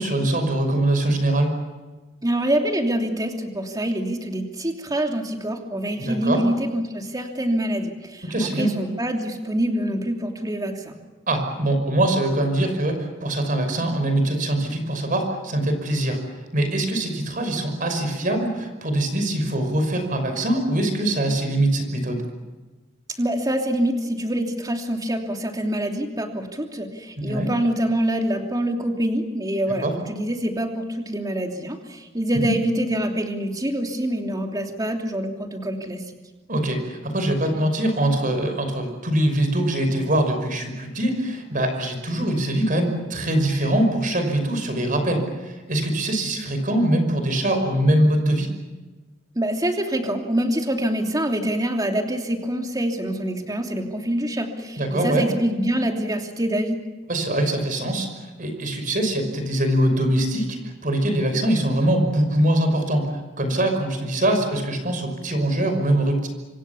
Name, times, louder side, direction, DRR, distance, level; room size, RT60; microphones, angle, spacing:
voice 1, 0.0-1.5 6.0-6.4 8.3-8.7 11.3-16.2 16.5-22.2 27.3-27.5 29.8-29.9 32.4-32.5 36.5-48.5 54.8-55.3 57.1-66.3, right 1 dB, 45° right, 7 dB, 5.6 m, -23 dB
voice 2, 2.2-11.0 23.2-36.1 49.3-56.8, right 1 dB, 20° right, 3 dB, 3.0 m, -25 dB
26.5 x 26.0 x 7.2 m, 1.2 s
head